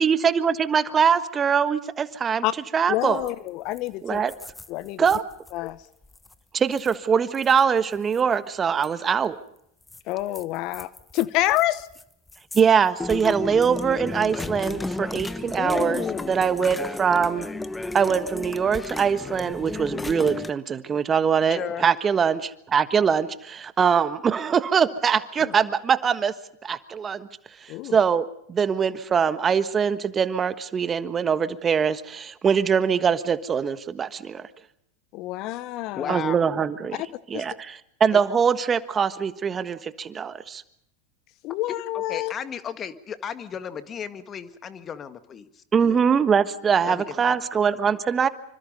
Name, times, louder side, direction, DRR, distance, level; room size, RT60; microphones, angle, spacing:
voice 1, 0.0-2.4 2.7-3.2 4.0-4.3 5.0-5.2 6.5-9.4 12.5-17.5 17.9-26.3 26.6-27.3 27.6-34.4 36.1-37.0 37.3-40.6 45.7-48.3, right 6 dB, 25° right, 1.4 m, -23 dB
voice 2, 2.9-4.2 4.7-5.1 5.5-5.8 10.1-11.9 14.6-14.8 25.4-25.5 27.7-28.0 35.1-36.1 36.9-37.1 37.3-37.4 41.4-42.3, left 16 dB, 50° left, 0.8 m, -27 dB
sound 1, 3.2-3.5 3.8-3.9 4.1-5.5 6.0-6.3 6.7-6.9 7.3-8.2 8.8-8.9 9.9-12.0 12.3-12.6 13.0-20.5, left 2 dB, 10° left, 1.2 m, -33 dB
voice 3, 15.6-16.4 21.5-21.9 35.9-36.4 42.1-46.1 46.9-47.4, left 7 dB, 30° left, 1.8 m, -34 dB
26.0 x 25.5 x 5.4 m
hypercardioid pair, 90°, 0 cm